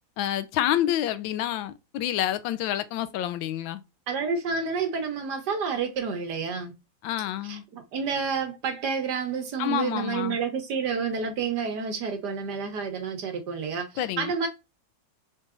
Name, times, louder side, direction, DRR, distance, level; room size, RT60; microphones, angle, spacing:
voice 1, 0.2-3.8 7.0-7.6 9.6-10.4 14.0-14.3, left 12 dB, 85° left, 1.3 m, -28 dB
voice 2, 4.1-6.7 7.5-13.9 14.2-14.5, right 5 dB, 65° right, 1.4 m, -29 dB
3.9 x 3.8 x 2.3 m
omnidirectional pair, 2.1 m